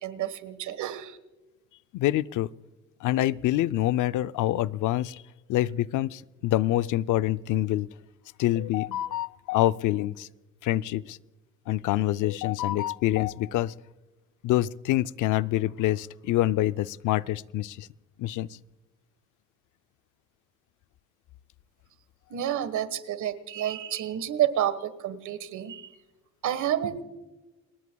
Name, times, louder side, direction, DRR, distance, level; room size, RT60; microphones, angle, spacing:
voice 1, 0.0-1.2 22.3-25.9 26.4-27.0, right 11 dB, 75° right, 13 dB, 1.5 m, -29 dB
voice 2, 1.9-2.5 3.0-5.2 5.5-7.9 8.4-10.3 10.6-11.2 11.7-13.7 14.4-17.9 18.2-18.5, left 14 dB, 80° left, 15 dB, 0.6 m, -26 dB
29.0 x 20.5 x 2.3 m, 1.1 s
cardioid pair, 90°, 30 cm